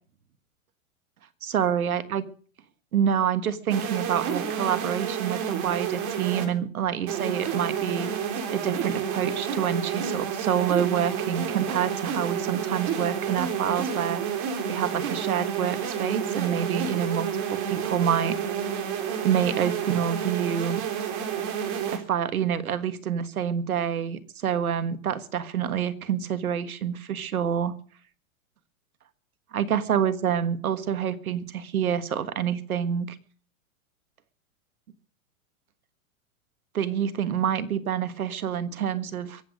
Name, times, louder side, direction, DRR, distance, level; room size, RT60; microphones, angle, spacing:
voice 1, 1.4-2.2 2.9-8.1 8.5-14.2 14.7-18.4 19.2-20.8 21.9-27.7 29.5-33.1 36.7-39.4, right 8 dB, 90° right, 12 dB, 1.6 m, -27 dB
sound 1, 3.7-6.5 7.1-22.0, right 7 dB, 40° right, 3.5 m, -30 dB
23.0 x 8.6 x 5.2 m, 0.42 s
hypercardioid pair, 120°, 42 cm